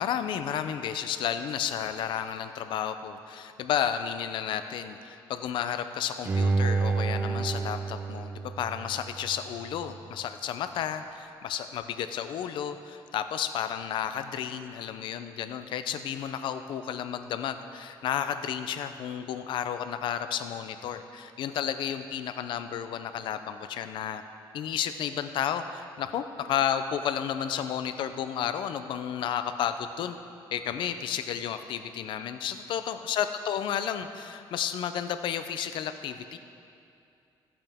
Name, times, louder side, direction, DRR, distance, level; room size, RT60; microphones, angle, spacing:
voice 1, 0.0-24.2 24.5-30.2 30.5-36.4, left 9 dB, 70° left, 9 dB, 0.5 m, -32 dB
Bowed string instrument, 6.3-9.4 9.8-9.9, right 4 dB, 25° right, 0.5 m, -29 dB
14.5 x 8.7 x 3.5 m, 2.5 s
cardioid pair, 165°, 9 cm